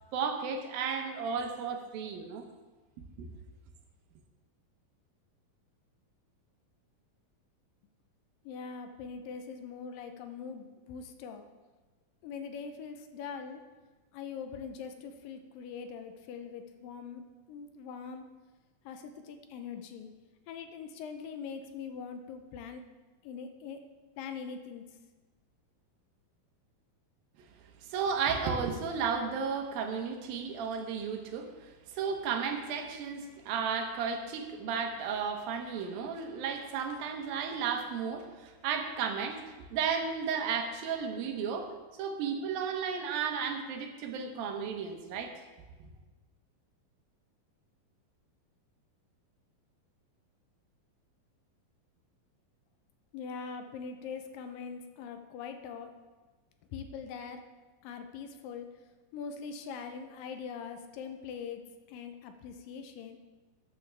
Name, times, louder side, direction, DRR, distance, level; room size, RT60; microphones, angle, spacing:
voice 1, 0.1-2.4 3.2-3.3 27.9-45.3, right 6 dB, 80° right, 5 dB, 2.7 m, -34 dB
voice 2, 8.5-11.5 12.2-13.6 14.1-17.2 17.5-18.2 18.9-20.1 20.5-22.8 23.2-23.8 24.2-24.8 53.1-55.9 56.7-57.4 57.8-58.7 59.1-61.6 61.9-63.2, left 6 dB, 80° left, 7 dB, 2.3 m, -42 dB
13.5 x 9.0 x 3.4 m, 1.2 s
omnidirectional pair, 4.2 m